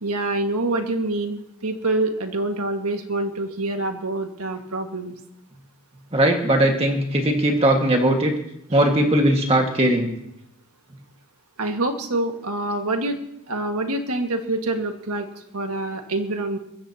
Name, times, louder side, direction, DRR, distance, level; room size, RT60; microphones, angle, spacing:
voice 1, 0.0-5.1 11.6-13.2 13.5-16.6, right 2 dB, 80° right, 4 dB, 1.8 m, -26 dB
voice 2, 6.1-8.3 8.7-10.1, right 1 dB, 25° right, 2 dB, 1.8 m, -19 dB
23.0 x 20.0 x 2.9 m, 0.81 s
head